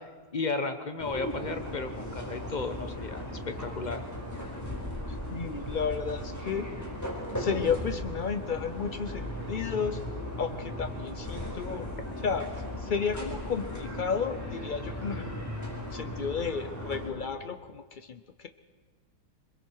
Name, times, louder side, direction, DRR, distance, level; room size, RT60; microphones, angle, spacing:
voice 1, 0.0-4.0, left 3 dB, 30° left, 7 dB, 1.2 m, -34 dB
sound 1, 1.0-17.1, left 1 dB, 10° left, 4.6 m, -37 dB
voice 2, 5.3-6.7 7.4-10.0 10.4-11.9 12.2-12.5 12.8-15.3 15.9-18.5, left 6 dB, 80° left, 10 dB, 0.4 m, -32 dB
25.0 x 22.0 x 4.7 m, 1.4 s
omnidirectional pair, 1.8 m